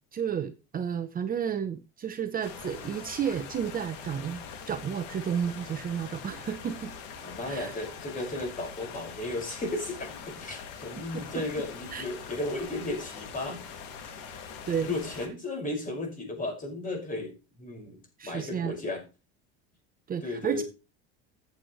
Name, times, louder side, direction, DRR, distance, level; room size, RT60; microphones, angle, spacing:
voice 1, 0.1-6.9 7.5-7.7 11.3-11.4 11.9-12.1 14.7-15.0 18.2-18.8 20.1-20.6, right 8 dB, 30° right, 0.8 m, -32 dB
sound 1, 2.4-15.3, left 6 dB, 75° left, 2.5 m, -43 dB
voice 2, 7.2-13.7 14.8-19.0 20.2-20.6, left 2 dB, 25° left, 5.7 m, -35 dB
13.5 x 8.0 x 3.2 m
supercardioid pair, 120°, 29 cm